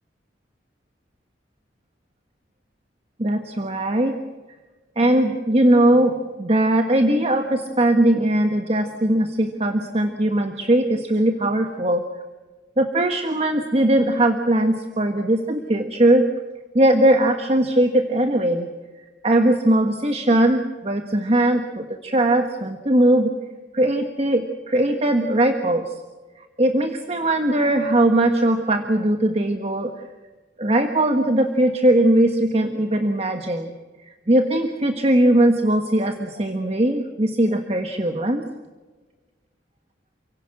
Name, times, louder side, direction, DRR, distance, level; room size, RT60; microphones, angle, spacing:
voice 1, 3.2-4.1 4.9-12.0 12.8-16.2 16.7-18.7 19.2-23.3 23.7-26.0 26.3-29.9 30.6-33.7 34.3-38.4, right 1 dB, 35° right, 5 dB, 1.5 m, -20 dB
29.0 x 17.5 x 7.6 m, 1.3 s
head